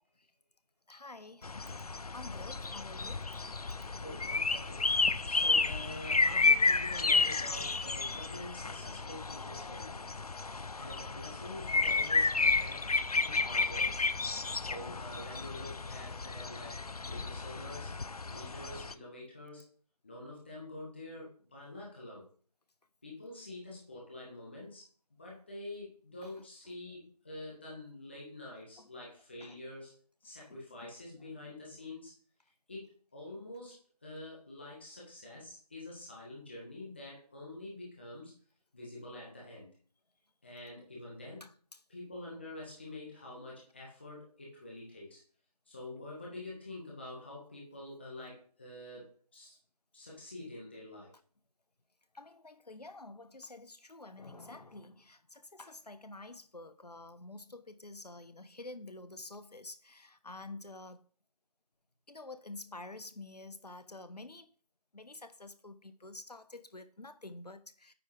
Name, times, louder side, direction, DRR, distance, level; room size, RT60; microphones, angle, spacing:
voice 1, 0.9-1.9 2.1-3.3 4.7-4.8 8.1-8.2 8.5-8.6 10.5-10.7 26.2-26.5 28.8-28.9 29.4-29.6 30.5-30.9 31.2-31.3 41.4-41.8 52.1-61.1 62.1-64.5 64.9-67.9, left 2 dB, 90° left, 1.1 m, -49 dB
sound 1, 1.4-18.9, left 3 dB, 70° left, 0.6 m, -32 dB
voice 2, 4.0-4.9 5.2-10.1 10.7-12.9 13.2-14.1 14.5-17.9 18.3-19.7 20.0-22.3 23.0-24.8 25.2-29.9 30.2-32.1 32.4-38.3 38.7-39.7 40.4-41.4 41.9-45.2 45.7-49.6 49.9-51.1, left 1 dB, 15° left, 1.5 m, -47 dB
9.1 x 5.1 x 4.8 m
figure-of-eight pair, 175°, 20 cm